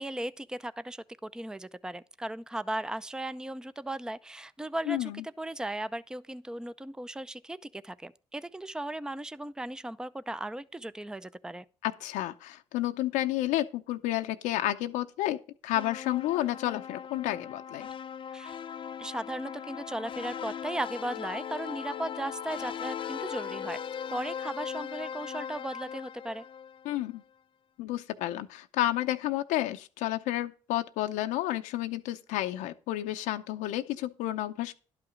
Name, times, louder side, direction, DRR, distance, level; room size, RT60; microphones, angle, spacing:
voice 1, 0.0-11.6 18.3-18.6 19.0-23.8 24.1-26.5, right 1 dB, 5° right, 0.6 m, -37 dB
voice 2, 4.9-5.2 11.8-17.9 26.8-27.2 27.8-34.7, left 14 dB, 80° left, 0.7 m, -31 dB
sound 1, 15.8-27.0, left 8 dB, 40° left, 0.5 m, -39 dB
11.5 x 5.8 x 5.1 m
supercardioid pair, 65°, 13 cm